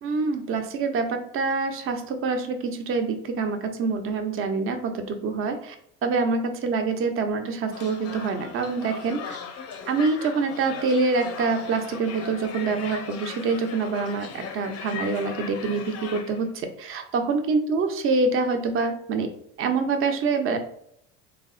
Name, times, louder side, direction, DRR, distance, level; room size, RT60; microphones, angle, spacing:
voice 1, 0.0-5.7 6.0-9.4 9.9-19.3 19.6-20.6, right 4 dB, 35° right, 6 dB, 0.5 m, -26 dB
sound 1, 7.7-16.5, left 6 dB, 40° left, 0.5 m, -38 dB
3.3 x 2.0 x 2.5 m, 0.71 s
hypercardioid pair, 85°, 39 cm